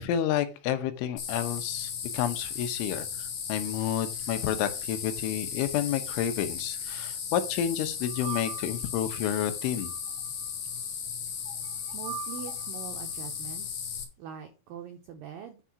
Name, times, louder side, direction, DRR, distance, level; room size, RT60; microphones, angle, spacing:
voice 1, 0.0-9.9, left 10 dB, 80° left, 9 dB, 3.4 m, -30 dB
sound 1, 1.2-14.0, left 7 dB, 60° left, 3.4 m, -36 dB
sound 2, 8.1-8.9 9.6-10.5 11.5-12.9, right 16 dB, 65° right, 2.4 m, -42 dB
voice 2, 11.9-13.9 14.2-15.6, right 8 dB, 85° right, 5 dB, 2.0 m, -43 dB
10.0 x 4.3 x 6.1 m, 0.32 s
omnidirectional pair, 5.5 m